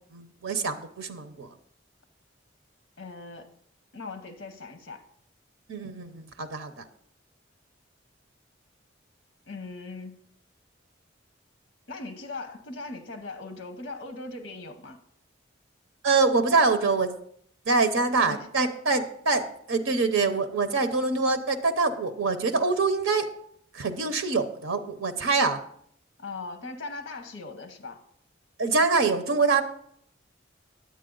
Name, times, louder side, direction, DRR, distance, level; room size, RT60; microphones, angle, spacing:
voice 1, 0.1-1.5 5.7-6.8 16.0-17.1 17.7-19.4 19.7-23.3 23.7-25.6 28.6-29.6, right 4 dB, 90° right, 8 dB, 0.8 m, -25 dB
voice 2, 3.0-3.5 3.9-5.0 9.5-10.3 11.9-15.0 18.1-18.5 26.2-28.0, left 3 dB, 55° left, 6 dB, 0.9 m, -39 dB
9.6 x 8.3 x 3.8 m, 0.67 s
head